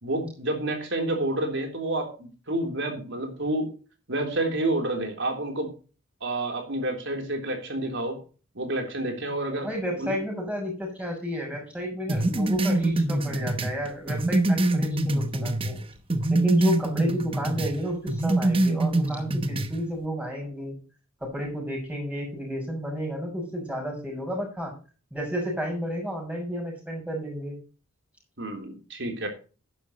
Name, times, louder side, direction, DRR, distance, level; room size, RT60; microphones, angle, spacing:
voice 1, 0.0-3.7 4.1-5.7 6.2-8.2 8.6-9.7 10.0-10.2 28.4-29.3, right 1 dB, 60° right, 4 dB, 3.6 m, -29 dB
voice 2, 9.6-15.8 16.3-20.8 21.2-24.7 25.1-27.6, equal, 5° right, -1 dB, 6.5 m, -31 dB
sound 1, 12.1-15.8 16.1-17.7 18.1-19.7, right 2 dB, 25° right, 0.9 m, -24 dB
12.0 x 11.0 x 3.1 m, 0.35 s
head